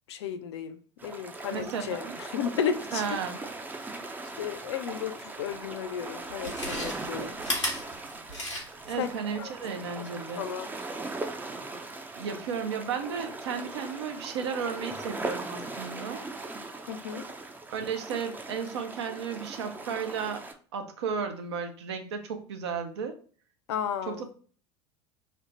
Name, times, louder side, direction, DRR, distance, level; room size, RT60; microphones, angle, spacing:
voice 1, 0.1-3.0 4.4-7.4 9.0-9.1 9.4-9.5 10.4-10.7 16.9-17.3 23.7-24.3, left 8 dB, 70° left, 0.4 m, -33 dB
sound 1, 1.0-20.5, right 2 dB, 10° right, 0.4 m, -39 dB
voice 2, 1.5-2.2 2.9-3.4 8.9-10.5 12.1-16.3 17.7-20.4 20.7-23.2 24.1-24.3, right 6 dB, 70° right, 0.6 m, -34 dB
Chewing mastication, 5.5-5.6 6.3-8.9 9.3-9.4, left 1 dB, 90° left, 1.1 m, -34 dB
3.2 x 2.1 x 3.8 m
figure-of-eight pair, 75°, 15 cm